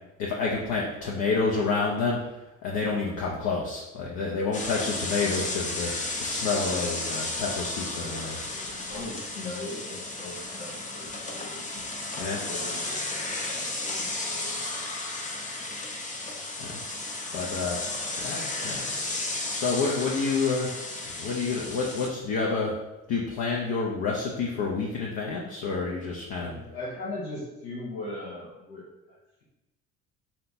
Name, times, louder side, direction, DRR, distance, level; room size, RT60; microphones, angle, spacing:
voice 1, 0.2-8.4 8.6-8.9 11.8-11.9 12.2-12.4 16.6-16.8 17.3-17.8 18.2-18.8 19.5-20.7 21.2-22.8 23.1-26.6, left 4 dB, 55° left, -3 dB, 0.8 m, -29 dB
sound 1, 4.5-22.1, left 2 dB, 20° left, 0.7 m, -33 dB
voice 2, 7.8-11.7 12.2-14.6 26.4-28.8 29.1-29.4, left 2 dB, 85° left, -9 dB, 1.2 m, -40 dB
3.2 x 2.9 x 4.0 m, 0.97 s
hypercardioid pair, 55°, 42 cm